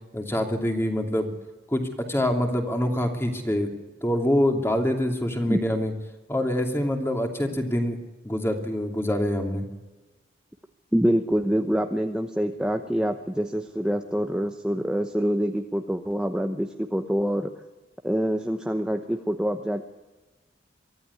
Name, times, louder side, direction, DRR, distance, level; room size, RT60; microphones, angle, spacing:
voice 1, 0.1-1.3 1.7-1.8 2.1-3.7 4.0-5.9 6.3-8.0 8.2-9.7, left 1 dB, 15° left, 4 dB, 2.8 m, -25 dB
voice 2, 10.9-17.5 18.0-19.8, equal, 5° right, 5 dB, 0.9 m, -25 dB
23.5 x 14.5 x 9.8 m, 1.2 s
head